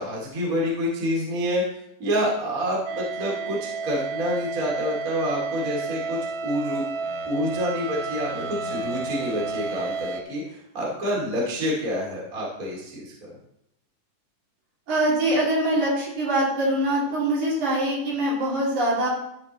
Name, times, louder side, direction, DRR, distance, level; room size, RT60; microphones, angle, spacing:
voice 1, 0.0-1.6 2.0-3.6 3.8-6.8 7.2-13.4, equal, 30° right, -3 dB, 2.6 m, -27 dB
sound 1, 2.9-10.2, right 4 dB, 90° right, 1.2 m, -31 dB
voice 2, 14.9-19.1, right 1 dB, 60° right, -6 dB, 4.3 m, -23 dB
13.5 x 5.0 x 4.2 m, 0.77 s
omnidirectional pair, 3.8 m